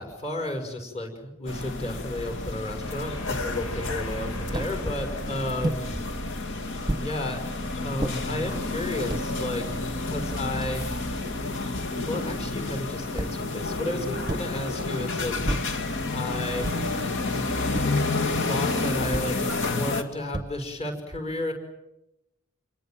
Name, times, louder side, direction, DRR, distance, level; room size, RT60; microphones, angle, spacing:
voice 1, 0.0-6.0 7.0-9.7 10.0-10.9 12.1-15.4 16.1-16.7 18.5-21.5, left 1 dB, 30° left, 7 dB, 5.9 m, -32 dB
sound 1, 1.5-20.0, left 3 dB, 60° left, 2.6 m, -30 dB
sound 2, 2.8-7.8, left 1 dB, 90° left, 3.9 m, -39 dB
sound 3, 4.5-4.8 5.6-5.9 6.9-7.1 8.0-8.2 8.9-9.3 10.0-10.1 10.3-11.3 13.2-13.5 14.3-14.6 15.4-15.8 16.6-17.0 17.7-18.1 19.1-19.4 20.3-20.8, right 1 dB, 20° right, 1.0 m, -32 dB
29.0 x 23.0 x 7.7 m, 0.89 s
head